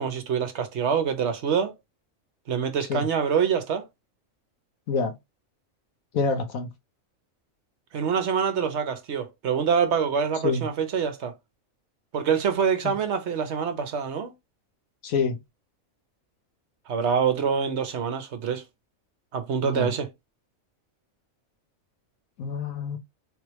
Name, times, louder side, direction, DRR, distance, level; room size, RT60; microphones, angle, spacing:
voice 1, 0.0-1.7 2.5-3.9 7.9-11.3 12.1-14.3 16.9-18.6 19.3-20.1, right 7 dB, 60° right, 0.9 m, -25 dB
voice 2, 6.1-6.7 10.4-10.6 12.8-12.9 15.0-15.4 19.6-19.9 22.4-23.0, left 4 dB, 80° left, 1.3 m, -26 dB
3.6 x 3.2 x 3.0 m
omnidirectional pair, 1.4 m